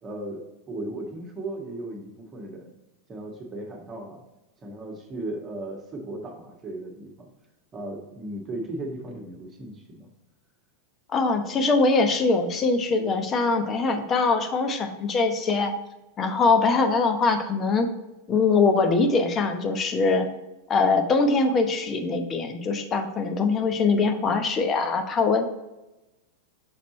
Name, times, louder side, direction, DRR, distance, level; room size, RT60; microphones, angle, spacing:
voice 1, 0.0-2.7 3.1-4.2 4.6-7.3 7.7-10.1, right 2 dB, 25° right, 1 dB, 1.5 m, -36 dB
voice 2, 11.1-15.7 16.2-17.9 18.3-20.3 20.7-25.5, left 4 dB, 25° left, 6 dB, 0.8 m, -22 dB
6.1 x 4.2 x 4.1 m, 0.98 s
figure-of-eight pair, 90°, 0 cm